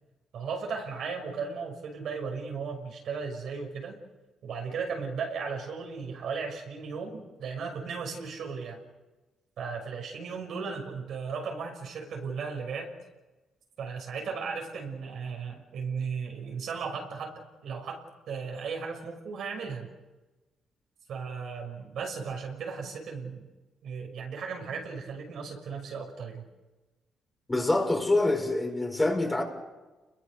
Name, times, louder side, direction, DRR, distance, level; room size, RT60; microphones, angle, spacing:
voice 1, 0.3-4.0 4.4-8.8 9.6-12.9 13.8-19.9 21.1-23.5 23.8-26.5, right 5 dB, 70° right, 6.2 m, -36 dB
voice 2, 27.5-29.4, left 2 dB, 15° left, 5.1 m, -25 dB
29.5 x 22.0 x 6.7 m
cardioid pair, 90°, 0 cm